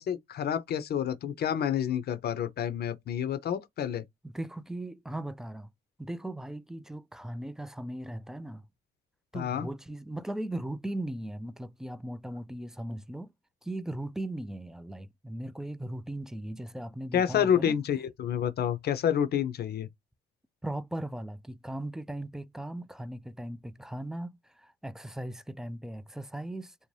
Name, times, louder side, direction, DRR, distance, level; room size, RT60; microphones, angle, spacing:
voice 1, 0.0-4.0 9.3-9.7 17.1-19.9, left 9 dB, 60° left, 0.6 m, -29 dB
voice 2, 4.2-5.7 6.0-8.6 9.3-13.3 13.6-17.8 20.6-26.7, right 1 dB, 5° right, 0.3 m, -38 dB
2.6 x 2.1 x 3.1 m
supercardioid pair, 60°, 19 cm